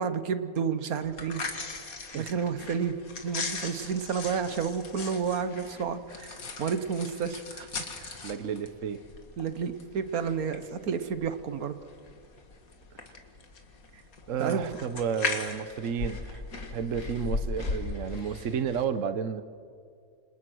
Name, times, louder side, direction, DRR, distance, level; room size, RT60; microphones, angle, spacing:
voice 1, 0.0-1.5 1.8-7.7 8.0-8.2 9.4-11.8 14.4-14.8, right 6 dB, 85° right, 11 dB, 1.6 m, -31 dB
sound 1, 1.0-18.8, left 3 dB, 75° left, 2.5 m, -38 dB
voice 2, 8.2-9.0 14.3-16.4 16.7-19.4, right 7 dB, 65° right, 11 dB, 1.3 m, -31 dB
27.5 x 27.0 x 6.3 m, 2.2 s
omnidirectional pair, 1.5 m